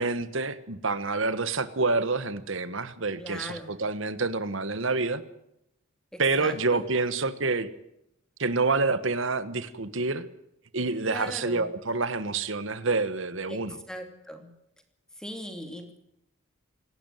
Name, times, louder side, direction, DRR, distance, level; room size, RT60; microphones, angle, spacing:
voice 1, 0.0-5.2 6.2-7.7 8.4-10.3 10.7-13.8, right 3 dB, 65° right, 13 dB, 1.4 m, -27 dB
voice 2, 3.2-3.7 6.1-6.8 11.1-11.7 13.5-14.5 15.2-16.0, equal, 5° left, 5 dB, 2.8 m, -39 dB
26.5 x 12.5 x 9.2 m, 0.81 s
head